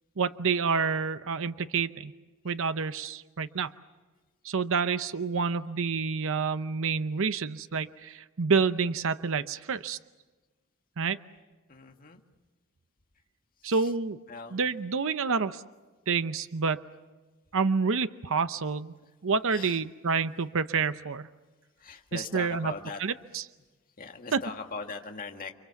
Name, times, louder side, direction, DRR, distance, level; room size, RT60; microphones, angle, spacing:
voice 1, 0.2-2.1 2.4-3.7 4.4-10.0 11.0-11.2 13.6-14.2 14.5-15.6 16.1-16.8 17.5-18.9 19.2-21.3 22.1-22.7 23.0-23.4, right 5 dB, 65° right, 12 dB, 0.8 m, -28 dB
voice 2, 11.7-12.2 13.6-13.9 14.3-14.6 19.0-19.1 19.5-19.8 21.8-23.0 24.0-25.5, left 4 dB, 40° left, 3 dB, 2.0 m, -40 dB
30.0 x 25.5 x 7.2 m, 1.2 s
head